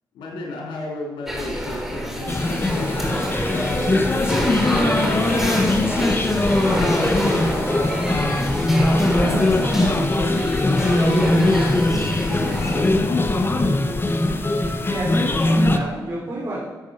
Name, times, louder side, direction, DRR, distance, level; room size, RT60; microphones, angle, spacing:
voice 1, 0.1-3.9 5.1-6.1 6.7-8.1 8.9-10.5 10.8-11.7 12.3-14.0, left 2 dB, 85° left, -1 dB, 3.7 m, -33 dB
sound 1, 1.3-12.9, equal, 5° right, 3.4 m, -27 dB
sound 2, 2.3-15.8, left 2 dB, 25° left, 1.1 m, -21 dB
voice 2, 6.4-6.8 14.9-16.6, right 2 dB, 45° right, -7 dB, 4.1 m, -30 dB
11.5 x 7.6 x 6.5 m, 1.2 s
supercardioid pair, 55°, 8 cm